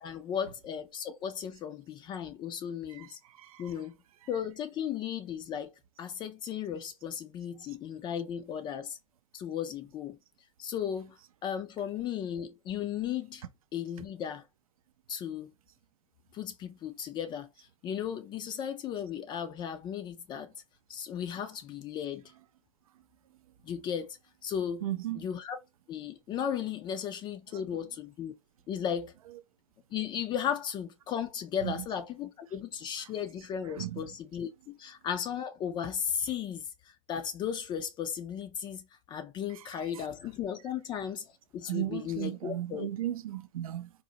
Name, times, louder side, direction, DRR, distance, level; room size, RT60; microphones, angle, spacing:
voice 1, 0.0-3.2 3.6-4.0 4.3-5.7 6.0-9.0 9.3-10.2 10.6-13.4 13.7-14.4 15.1-15.5 16.3-20.5 20.9-22.3 23.6-24.2 24.4-24.8 25.1-25.6 25.9-28.3 28.7-29.1 29.9-38.8 39.1-42.9, left 8 dB, 25° left, 0.3 m, -35 dB
voice 2, 2.9-3.6 24.8-25.3 31.6-31.7 33.8-34.0 39.6-40.0 41.7-43.9, right 13 dB, 85° right, 0.4 m, -36 dB
3.9 x 2.0 x 2.7 m
hypercardioid pair, 120°, 18 cm